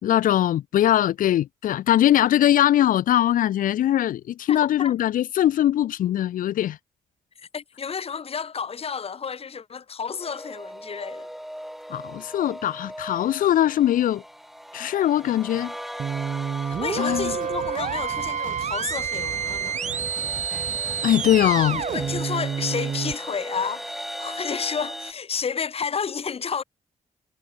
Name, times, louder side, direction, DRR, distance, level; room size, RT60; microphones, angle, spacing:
voice 1, 0.0-6.8 11.9-14.2 14.7-15.7 17.0-17.3 21.0-21.8, left 12 dB, 75° left, 0.9 m, -21 dB
voice 2, 4.5-4.9 7.4-11.3 16.6-19.8 21.7-26.6, left 6 dB, 45° left, 1.2 m, -31 dB
sound 1, 10.2-25.1, equal, ahead, 4.8 m, -38 dB
sound 2, 16.0-23.1, right 7 dB, 60° right, 2.4 m, -29 dB
sound 3, 16.7-22.2, right 11 dB, 75° right, 1.3 m, -41 dB
cardioid pair, 65°, 14 cm